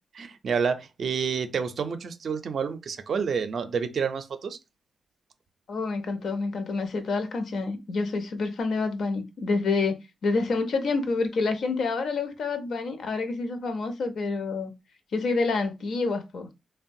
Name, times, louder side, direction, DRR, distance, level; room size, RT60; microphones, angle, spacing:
voice 1, 0.1-4.6, right 6 dB, 55° right, 0.4 m, -29 dB
voice 2, 5.7-14.7 15.1-16.5, left 3 dB, 65° left, 0.5 m, -28 dB
3.6 x 2.1 x 2.6 m
wide cardioid pair, 140°, 0 cm